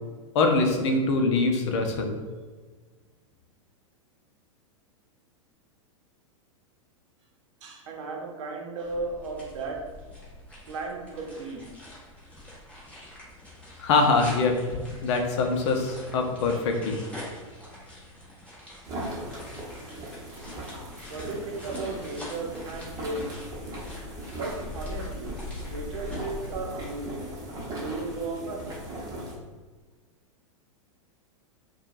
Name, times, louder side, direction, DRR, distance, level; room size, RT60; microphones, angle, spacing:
voice 1, 0.3-2.1 13.8-14.6 15.0-17.0, left 3 dB, 55° left, 3 dB, 0.6 m, -23 dB
voice 2, 7.6-9.9 10.6-11.7 20.7-23.4 23.7-24.0 24.3-25.4 25.6-28.7 29.0-29.2, right 3 dB, 60° right, 1 dB, 0.8 m, -36 dB
sound 1, 8.8-26.6, left 1 dB, 10° left, 1.3 m, -43 dB
sound 2, 18.8-29.3, right 1 dB, 20° right, 1.0 m, -39 dB
4.4 x 2.3 x 2.6 m, 1.4 s
hypercardioid pair, 100°, 17 cm